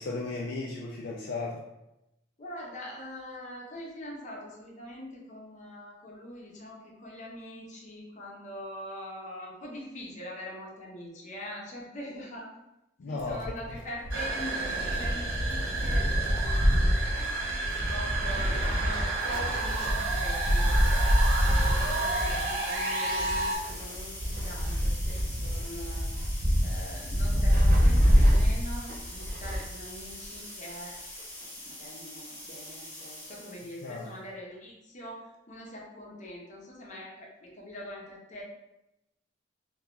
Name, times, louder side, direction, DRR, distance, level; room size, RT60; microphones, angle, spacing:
voice 1, 0.0-1.6 13.0-13.4 21.9-22.0 27.4-27.8 33.8-34.1, left 3 dB, 60° left, -3 dB, 0.4 m, -36 dB
voice 2, 2.4-12.5 13.1-17.4 17.6-20.8 21.0-26.3 26.6-30.9 31.4-38.4, equal, 40° left, -3 dB, 0.8 m, -43 dB
Wind, 13.2-29.8 30.1-30.2 31.2-31.3, equal, 45° right, 0.6 m, -26 dB
sound 1, 14.1-23.6, right 3 dB, 90° right, 0.7 m, -31 dB
sound 2, 19.2-34.1, left 1 dB, 10° left, 0.9 m, -44 dB
2.8 x 2.3 x 3.7 m, 0.90 s
head